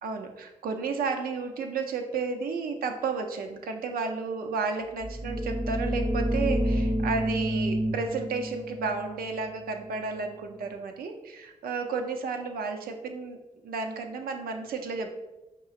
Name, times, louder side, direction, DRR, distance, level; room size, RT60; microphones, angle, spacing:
voice 1, 0.0-13.4 13.6-15.1, right 4 dB, 80° right, 4 dB, 0.5 m, -32 dB
sound 1, 4.9-10.5, equal, 15° right, 0.6 m, -30 dB
5.3 x 2.9 x 2.4 m, 1.0 s
supercardioid pair, 40°, 15 cm